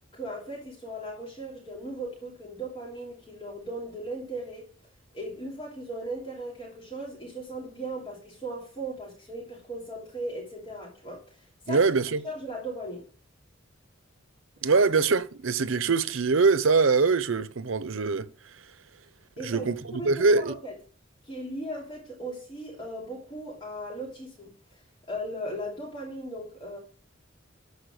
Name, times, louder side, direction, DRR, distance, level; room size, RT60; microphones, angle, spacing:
voice 1, 0.1-4.6 5.1-11.4 11.6-11.8 12.2-13.1 19.4-20.7 21.2-24.5 25.1-26.8, right 1 dB, 25° left, 3.2 m, -37 dB
voice 2, 11.7-12.2 14.6-18.3 19.4-19.8 20.0-20.6, right 4 dB, 80° right, 0.8 m, -23 dB
13.0 x 4.9 x 6.6 m
head